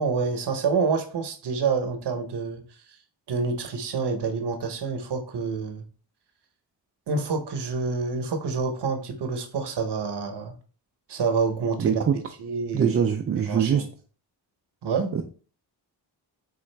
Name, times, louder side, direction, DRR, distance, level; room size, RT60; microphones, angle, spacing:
voice 1, 0.0-2.6 3.3-5.8 7.1-10.5 11.1-12.1 12.4-13.0 13.5-13.8 14.8-15.1, right 4 dB, 65° right, 7 dB, 0.8 m, -27 dB
voice 2, 11.8-12.2 12.7-13.8 15.1-15.2, right 7 dB, 35° right, 4 dB, 0.4 m, -23 dB
3.9 x 2.4 x 3.2 m, 0.40 s
cardioid pair, 55°, 45 cm